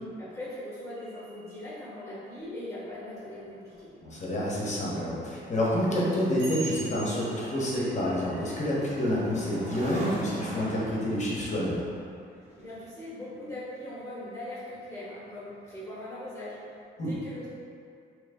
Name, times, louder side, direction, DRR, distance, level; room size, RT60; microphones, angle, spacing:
voice 1, 0.2-3.9 12.6-16.5 17.0-17.5, left 1 dB, 15° left, -10 dB, 1.3 m, -40 dB
sound 1, 0.9-2.5 3.7-3.8 5.3-5.4 6.4-10.5 12.0-12.1, right 3 dB, 65° right, 1.0 m, -45 dB
sound 2, 3.4-15.1 15.5-15.8, right 1 dB, 35° right, 1.0 m, -43 dB
voice 2, 4.0-11.8 17.0-17.1, equal, 35° left, -6 dB, 1.1 m, -28 dB
3.1 x 3.1 x 3.6 m, 2.4 s
cardioid pair, 90°, 20 cm